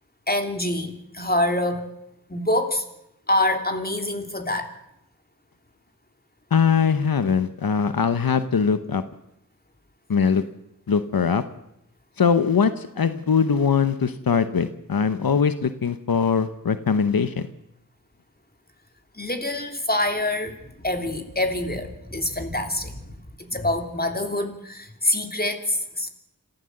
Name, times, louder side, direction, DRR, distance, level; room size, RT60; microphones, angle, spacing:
voice 1, 0.3-1.8 2.3-2.8 3.3-4.7 19.2-23.1 23.4-26.1, left 1 dB, 25° left, 6 dB, 3.1 m, -25 dB
voice 2, 6.5-9.0 10.1-10.4 10.9-11.4 12.2-17.5, left 6 dB, 85° left, 12 dB, 0.9 m, -21 dB
26.5 x 15.0 x 7.8 m, 0.84 s
wide cardioid pair, 45°, 34 cm